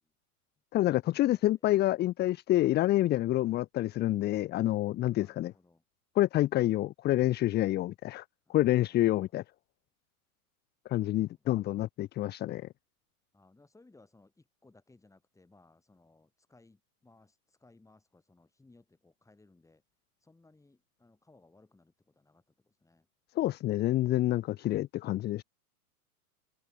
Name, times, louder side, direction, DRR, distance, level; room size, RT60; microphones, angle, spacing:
voice 1, 0.7-5.5 6.2-8.2 8.5-9.4 10.9-12.7 23.4-25.4, left 15 dB, 20° left, 0.7 m, -28 dB
voice 2, 5.2-5.8 8.5-9.3 10.9-11.1 13.3-14.3 14.6-17.3 17.6-19.8 20.2-22.4 22.8-23.0, left 2 dB, 5° left, 6.6 m, -62 dB
hypercardioid pair, 125°, 45 cm